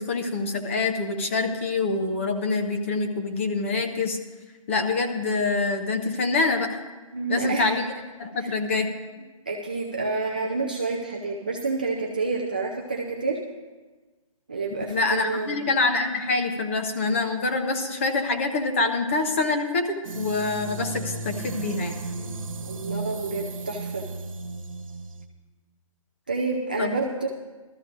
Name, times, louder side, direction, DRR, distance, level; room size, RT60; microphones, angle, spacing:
voice 1, 0.0-4.2 4.7-6.8 7.3-7.9 8.2-8.9 14.9-22.0 26.8-27.0, left 3 dB, 20° left, 5 dB, 0.7 m, -25 dB
voice 2, 7.1-7.7 8.4-8.5 9.5-13.4 14.5-15.6 22.6-24.1 26.3-27.3, right 3 dB, 15° right, -2 dB, 0.3 m, -29 dB
sound 1, 20.0-25.3, right 3 dB, 70° right, 1.2 m, -34 dB
19.0 x 13.5 x 2.5 m, 1.3 s
hypercardioid pair, 170°, 18 cm